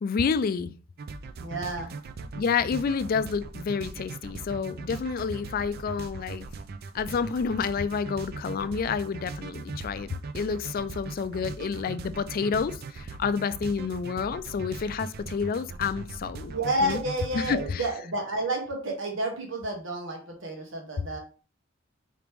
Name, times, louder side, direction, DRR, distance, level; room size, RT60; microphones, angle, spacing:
voice 1, 0.0-0.7 2.3-6.5 6.9-10.1 10.3-16.5 16.8-17.0 17.3-17.8, left 5 dB, 50° left, 0.3 m, -29 dB
sound 1, 1.0-17.7, right 4 dB, 55° right, 0.4 m, -39 dB
voice 2, 1.4-1.9 16.4-21.2, right 1 dB, 80° right, 1.3 m, -30 dB
4.9 x 3.1 x 3.4 m
head